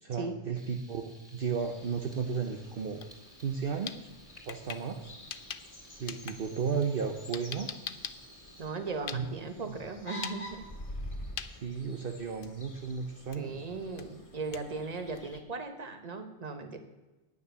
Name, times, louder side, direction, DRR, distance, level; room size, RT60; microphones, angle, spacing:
voice 1, 0.0-3.0 3.4-3.9 4.4-5.1 5.9-7.7 9.1-9.3 9.6-9.8 11.6-13.6, right 6 dB, 55° right, 4 dB, 1.0 m, -34 dB
Frying (food), 0.5-8.7, equal, ahead, 3.1 m, -58 dB
sound 1, 1.6-15.4, equal, 30° left, 1.8 m, -48 dB
sound 2, 3.0-3.1 3.4-5.8 6.1-9.5 10.1-10.4 10.7-11.0 11.4-11.5 12.0-12.1 12.4-12.8 13.3-13.5 14.0-15.4, left 8 dB, 55° left, 0.8 m, -42 dB
voice 2, 8.6-10.6 13.3-16.8, right 4 dB, 35° right, 7 dB, 1.3 m, -38 dB
9.8 x 9.4 x 6.8 m, 1.1 s
omnidirectional pair, 1.2 m